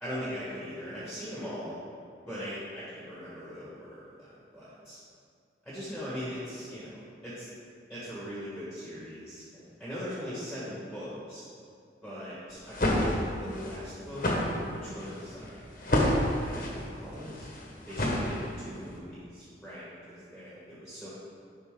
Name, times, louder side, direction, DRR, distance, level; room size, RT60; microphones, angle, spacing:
voice 1, 0.0-1.8 2.3-5.0 5.6-7.5 7.9-11.5 12.0-14.3 14.7-15.8 16.2-17.5 17.9-21.1, equal, ahead, -10 dB, 1.6 m, -40 dB
sound 1, 12.5-18.8, left 1 dB, 50° left, 1.3 m, -29 dB
11.0 x 5.6 x 3.8 m, 2.4 s
head